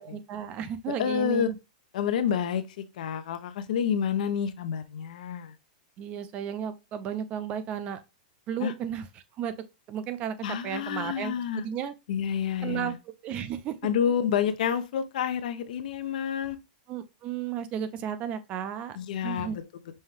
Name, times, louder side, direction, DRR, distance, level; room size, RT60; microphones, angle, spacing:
voice 1, 0.0-1.6 6.0-8.0 8.5-9.0 9.4-9.5 9.9-11.9 12.6-12.9 13.2-13.8 16.9-19.0 19.2-19.6, right 9 dB, 25° right, 0.5 m, -33 dB
voice 2, 1.0-1.5 1.9-5.5 8.6-8.7 10.4-11.7 12.1-12.9 13.8-16.6 19.0-19.6, left 8 dB, 65° left, 0.6 m, -29 dB
5.5 x 2.2 x 3.1 m
supercardioid pair, 155°, 5 cm